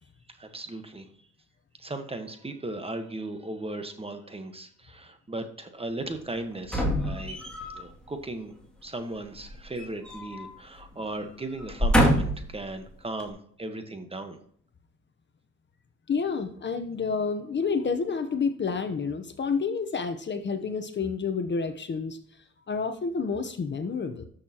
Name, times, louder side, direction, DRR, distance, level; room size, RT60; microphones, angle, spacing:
voice 1, 0.3-1.1 1.8-8.5 8.8-14.4, right 2 dB, 20° right, 7 dB, 1.3 m, -37 dB
sound 1, 6.6-7.8 9.4-10.5 10.8-11.0 11.6-12.5 13.2-13.3, equal, 5° left, 2.4 m, -25 dB
voice 2, 16.1-22.2 22.7-24.3, left 5 dB, 35° left, 8 dB, 0.9 m, -29 dB
13.5 x 6.5 x 2.9 m, 0.62 s
cardioid pair, 90°, 30 cm